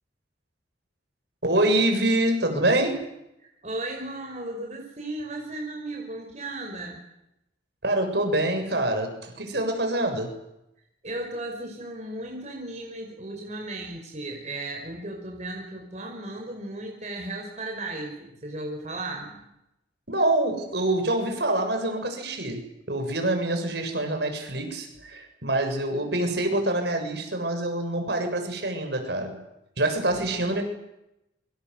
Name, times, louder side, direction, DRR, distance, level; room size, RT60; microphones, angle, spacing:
voice 1, 1.4-3.0 7.8-10.4 20.1-29.4 29.8-30.7, right 1 dB, 60° right, 5 dB, 7.4 m, -26 dB
voice 2, 3.4-7.0 11.0-19.3, right 2 dB, 40° right, 2 dB, 5.4 m, -35 dB
28.0 x 25.5 x 8.2 m, 0.87 s
head